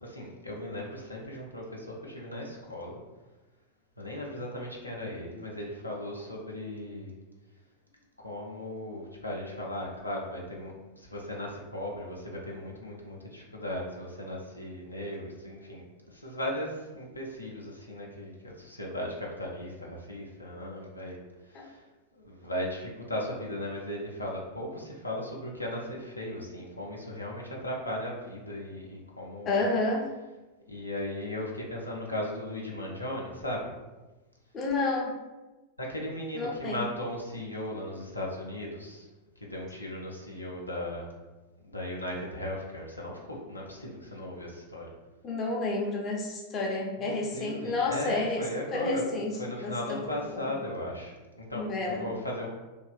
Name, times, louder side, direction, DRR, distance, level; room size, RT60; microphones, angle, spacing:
voice 1, 0.0-3.0 4.0-7.1 8.2-21.2 21.4-21.8 22.1-29.6 30.7-33.7 35.8-39.1 39.4-41.1 41.6-44.9 47.0-49.0 49.4-52.5, left 1 dB, 85° left, -2 dB, 0.4 m, -37 dB
voice 2, 29.5-30.1 34.5-35.2 36.3-36.8 45.2-48.4 48.7-50.5 51.5-52.1, left 2 dB, 30° left, -1 dB, 0.5 m, -30 dB
2.6 x 2.3 x 2.2 m, 1.1 s
figure-of-eight pair, 90°, 0 cm